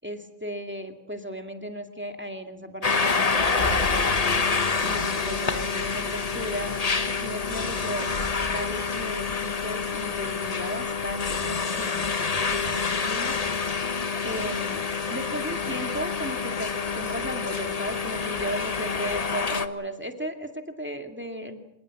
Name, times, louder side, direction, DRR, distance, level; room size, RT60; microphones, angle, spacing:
voice 1, 0.0-4.1 4.8-6.8 7.1-13.4 14.2-21.6, equal, 10° right, 5 dB, 2.2 m, -36 dB
sound 1, 2.8-19.7, left 5 dB, 35° left, 1.1 m, -27 dB
sound 2, 3.1-9.0, equal, 55° left, 4.6 m, -37 dB
26.0 x 20.5 x 7.7 m, 0.80 s
omnidirectional pair, 1.3 m